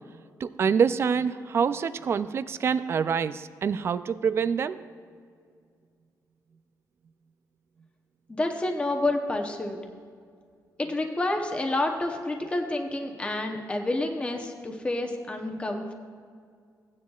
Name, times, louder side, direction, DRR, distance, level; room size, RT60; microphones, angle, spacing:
voice 1, 0.4-4.8, right 6 dB, 40° right, 13 dB, 0.3 m, -26 dB
voice 2, 8.3-9.8 10.8-15.9, left 2 dB, 15° left, 3 dB, 0.8 m, -29 dB
16.0 x 9.5 x 2.4 m, 2.1 s
cardioid pair, 135°, 7 cm